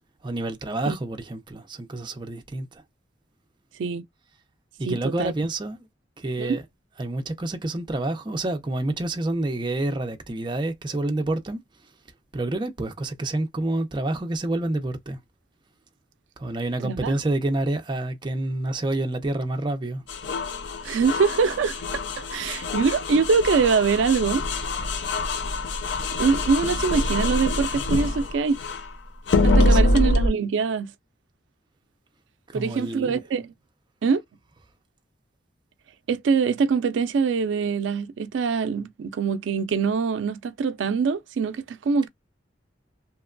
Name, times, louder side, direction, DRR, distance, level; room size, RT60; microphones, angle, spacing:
voice 1, 0.2-2.8 4.8-5.9 6.2-6.6 7.0-11.9 12.3-15.2 16.4-20.0 29.6-30.0 32.5-33.2, right 2 dB, 25° right, 0.5 m, -28 dB
voice 2, 4.9-5.3 6.4-6.6 16.8-17.1 20.8-24.4 26.2-28.6 29.4-30.9 32.5-33.5 34.0-34.2 36.1-42.1, right 5 dB, 90° right, 0.4 m, -24 dB
sound 1, 20.1-28.9 29.3-30.3, left 2 dB, 70° left, 0.5 m, -25 dB
2.9 x 2.2 x 2.4 m
head